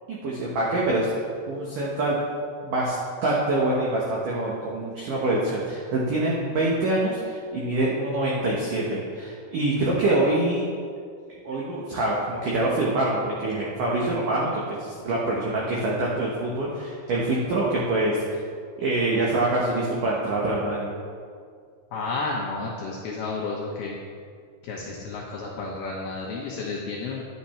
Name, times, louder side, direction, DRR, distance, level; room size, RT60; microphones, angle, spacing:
voice 1, 0.1-1.1 1.5-2.2 2.6-3.0 3.2-10.7 11.5-18.4 18.8-20.9, right 2 dB, 85° right, -4 dB, 1.9 m, -25 dB
voice 2, 21.9-24.0 24.6-27.2, left 3 dB, 75° left, -3 dB, 2.4 m, -31 dB
11.0 x 9.4 x 4.4 m, 2.1 s
omnidirectional pair, 5.8 m